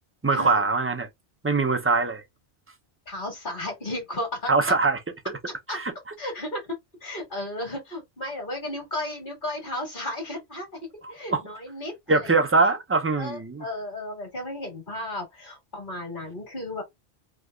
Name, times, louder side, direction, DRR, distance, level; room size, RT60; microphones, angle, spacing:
voice 1, 0.2-1.1 1.4-2.2 4.5-5.0 5.7-5.9 11.3-11.4 12.1-13.6, right 3 dB, 20° right, 0.4 m, -22 dB
voice 2, 3.0-4.8 5.7-5.8 6.2-12.3 13.2-16.8, left 1 dB, 55° left, 1.8 m, -34 dB
3.3 x 2.9 x 2.3 m
omnidirectional pair, 1.0 m